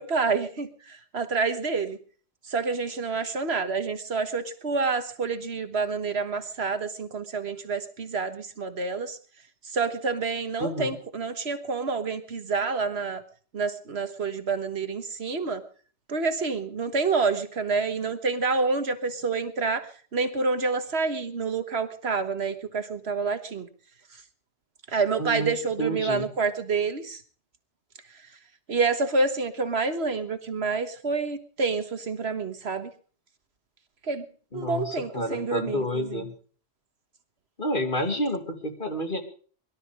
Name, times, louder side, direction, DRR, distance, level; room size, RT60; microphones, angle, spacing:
voice 1, 0.0-2.0 2.5-9.2 9.7-13.2 13.5-15.6 16.1-23.7 24.9-27.2 28.7-32.9 34.1-34.3 34.5-36.2, right 4 dB, 65° right, 9 dB, 1.6 m, -28 dB
voice 2, 10.6-11.0 25.2-25.5 25.8-26.3 34.5-36.3 37.6-39.2, equal, 45° left, 4 dB, 2.6 m, -29 dB
22.0 x 12.5 x 5.0 m, 0.43 s
omnidirectional pair, 1.2 m